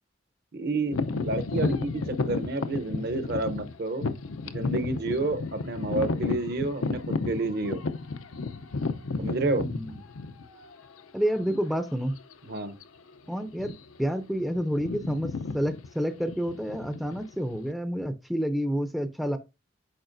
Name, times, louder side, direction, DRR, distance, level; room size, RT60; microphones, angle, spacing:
voice 1, 0.5-4.1 4.4-7.8 9.2-9.7 11.5-11.6 12.5-12.8, right 2 dB, 50° right, 0.8 m, -30 dB
sound 1, 0.9-10.7 11.3-11.4 12.1-12.3 12.6-12.8 13.5-14.0 14.3-17.7, left 3 dB, 90° left, 0.7 m, -32 dB
voice 2, 9.6-10.0 11.1-12.1 13.3-19.4, equal, ahead, 0.5 m, -29 dB
8.8 x 5.8 x 2.6 m
head